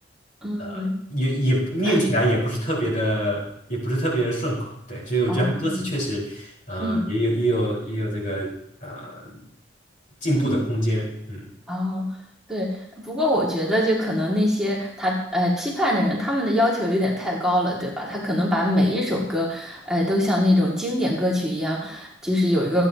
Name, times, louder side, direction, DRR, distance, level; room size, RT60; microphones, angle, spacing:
voice 1, 0.4-1.0 1.8-2.1 5.3-5.9 6.8-7.1 10.3-10.6 11.7-12.2 12.5-22.9, left 1 dB, 5° right, -5 dB, 2.3 m, -23 dB
voice 2, 1.1-8.5 8.8-9.4 10.2-11.5, right 1 dB, 50° left, -3 dB, 4.7 m, -25 dB
27.0 x 9.3 x 2.9 m, 0.72 s
head